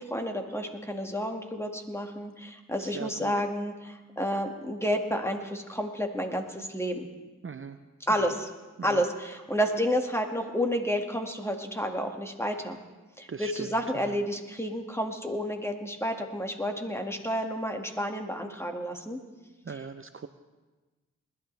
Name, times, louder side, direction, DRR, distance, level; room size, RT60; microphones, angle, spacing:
voice 1, 0.0-7.1 8.0-8.5 8.8-12.8 13.2-19.2 19.7-19.8, equal, 10° left, 3 dB, 2.0 m, -30 dB
voice 2, 2.8-3.3 7.4-7.8 8.2-8.3 8.8-9.0 13.3-13.7 13.9-14.1 19.7-20.3, right 5 dB, 40° right, 9 dB, 0.7 m, -39 dB
21.0 x 12.0 x 3.4 m, 1.2 s
cardioid pair, 40°, 32 cm